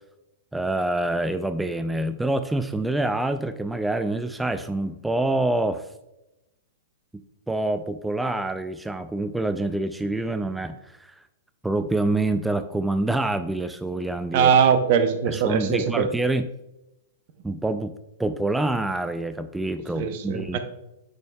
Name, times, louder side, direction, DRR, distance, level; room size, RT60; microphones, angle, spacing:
voice 1, 0.5-5.9 7.5-11.2 11.6-14.5 15.3-16.5 17.4-17.9 18.2-20.6, right 2 dB, 5° right, 10 dB, 0.3 m, -26 dB
voice 2, 14.3-16.1 19.9-20.6, right 7 dB, 45° right, 8 dB, 0.8 m, -21 dB
8.7 x 6.3 x 2.3 m, 0.91 s
figure-of-eight pair, 105°, 0 cm